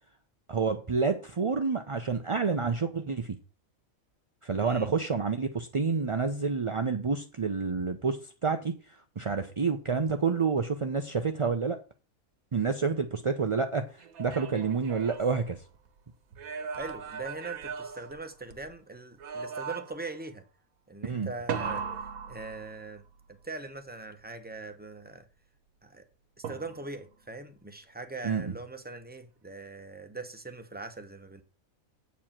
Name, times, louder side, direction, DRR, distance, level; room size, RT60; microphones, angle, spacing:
voice 1, 0.5-3.4 4.4-8.7 9.2-11.8 12.5-13.9 14.2-15.6 21.0-21.3 28.2-28.5, right 5 dB, 40° right, 0.4 m, -28 dB
sound 1, 14.0-15.9 16.3-18.7 19.2-20.2 21.5-23.1 26.4-27.1, right 6 dB, 80° right, 1.4 m, -38 dB
voice 2, 16.7-20.5 20.9-21.9 22.3-23.0 23.3-25.3 25.8-26.1 26.4-31.4, right 3 dB, 10° right, 0.8 m, -41 dB
8.2 x 4.8 x 7.3 m
omnidirectional pair, 1.5 m